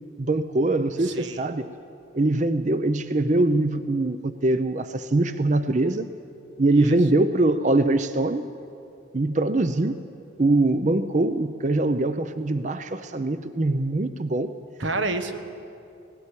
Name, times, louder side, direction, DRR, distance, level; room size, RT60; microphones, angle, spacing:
voice 1, 0.2-1.7 2.1-6.1 6.6-8.5 9.1-10.0 10.4-14.5, right 2 dB, 40° right, 11 dB, 0.6 m, -23 dB
voice 2, 1.0-1.4 6.8-7.0 14.8-15.6, right 2 dB, 90° right, 8 dB, 1.4 m, -29 dB
18.5 x 17.5 x 10.0 m, 2.6 s
head